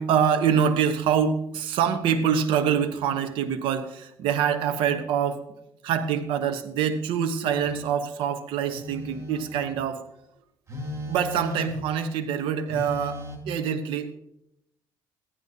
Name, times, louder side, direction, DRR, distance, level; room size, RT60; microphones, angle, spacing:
voice 1, 0.0-5.4 5.8-10.0 11.1-14.2, right 8 dB, 80° right, 9 dB, 1.0 m, -25 dB
Telephone, 7.5-7.8 8.7-9.8 10.7-11.9 12.7-13.4, left 1 dB, 35° right, 2.3 m, -37 dB
14.5 x 11.5 x 2.8 m, 0.81 s
cardioid pair, 85°, 9 cm